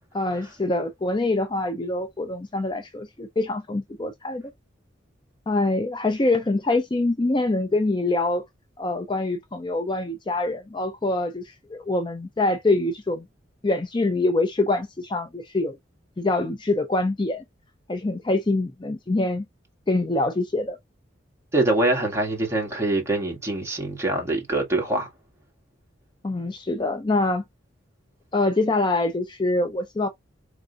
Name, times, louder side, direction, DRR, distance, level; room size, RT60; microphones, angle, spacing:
voice 1, 0.1-4.5 5.5-8.4 8.8-13.3 13.6-15.8 16.2-17.4 17.9-19.5 19.9-20.8 26.2-27.4 28.3-30.1, left 2 dB, 25° left, 0.5 m, -25 dB
voice 2, 21.5-25.1, right 2 dB, 15° right, 1.8 m, -24 dB
4.6 x 3.7 x 2.4 m
head